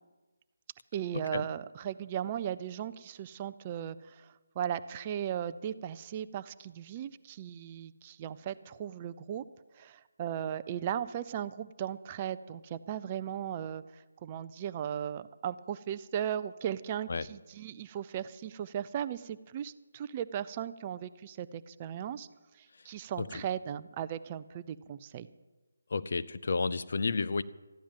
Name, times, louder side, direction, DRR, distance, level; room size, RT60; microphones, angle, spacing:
voice 1, 0.9-9.4 9.7-22.3 22.5-25.3, right 9 dB, 25° right, 13 dB, 0.5 m, -37 dB
voice 2, 25.9-27.4, left 4 dB, 55° left, 13 dB, 0.6 m, -31 dB
14.0 x 10.0 x 7.4 m, 1.2 s
figure-of-eight pair, 160°, 0 cm